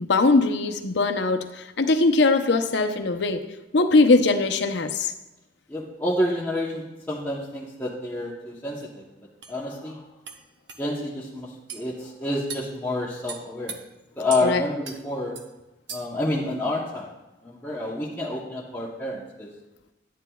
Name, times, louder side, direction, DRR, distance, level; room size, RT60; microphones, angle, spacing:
voice 1, 0.1-3.4 3.7-5.1 14.4-14.6, left 3 dB, 65° left, 7 dB, 0.6 m, -21 dB
voice 2, 5.7-9.0 9.5-10.0 10.8-11.5 11.7-13.8 14.2-15.4 15.9-17.1 17.4-19.5, left 1 dB, 10° left, -6 dB, 0.9 m, -28 dB
sound 1, 8.8-8.9 9.4-9.6 10.3-10.4 10.7-10.8 11.7-11.9 12.5-12.7 13.3-13.8 14.3-14.5 14.8-15.0 15.4-15.5 15.9-16.2, right 6 dB, 65° right, 0.8 m, -37 dB
11.0 x 9.5 x 2.3 m, 0.99 s
head